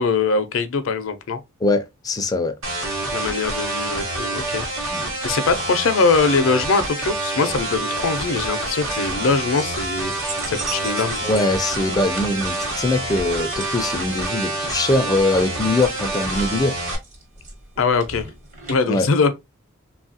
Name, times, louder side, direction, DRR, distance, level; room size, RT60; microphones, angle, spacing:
voice 1, 0.0-1.4 3.1-4.7 5.2-11.2 17.8-18.3 18.7-19.4, left 4 dB, 75° left, 0.5 m, -22 dB
voice 2, 1.6-2.5 4.9-5.0 11.2-16.7 18.9-19.1, left 2 dB, 20° left, 0.3 m, -22 dB
sound 1, 2.6-17.0, right 2 dB, 85° right, 1.1 m, -27 dB
sound 2, 8.5-18.8, right 3 dB, 40° right, 1.0 m, -39 dB
3.1 x 2.3 x 2.6 m
head